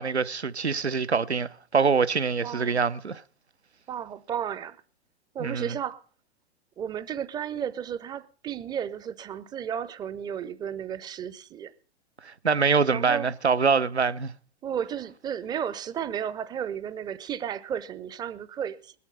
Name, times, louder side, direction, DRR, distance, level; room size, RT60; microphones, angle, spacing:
voice 1, 0.0-3.2 5.4-5.7 12.2-14.3, right 5 dB, 85° right, 0.7 m, -24 dB
voice 2, 2.4-2.8 3.9-4.8 5.3-6.0 6.8-11.7 12.9-13.3 14.6-18.9, right 8 dB, 15° right, 0.6 m, -33 dB
20.5 x 8.5 x 5.6 m
figure-of-eight pair, 100°, 32 cm